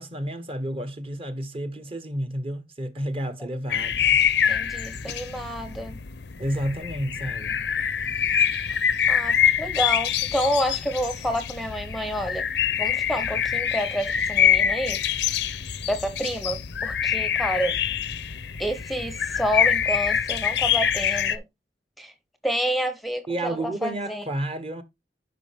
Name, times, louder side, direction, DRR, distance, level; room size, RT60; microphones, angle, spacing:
voice 1, 0.0-4.2 5.1-5.2 6.4-7.6 23.3-24.8, right 1 dB, 35° right, 1.2 m, -31 dB
sound 1, 3.7-21.4, left 8 dB, 70° left, 0.7 m, -25 dB
voice 2, 4.5-6.0 9.1-12.5 12.8-15.0 15.9-17.8 18.6-21.4 22.0-22.1 22.4-24.3, equal, ahead, 0.8 m, -29 dB
11.0 x 5.2 x 3.5 m
head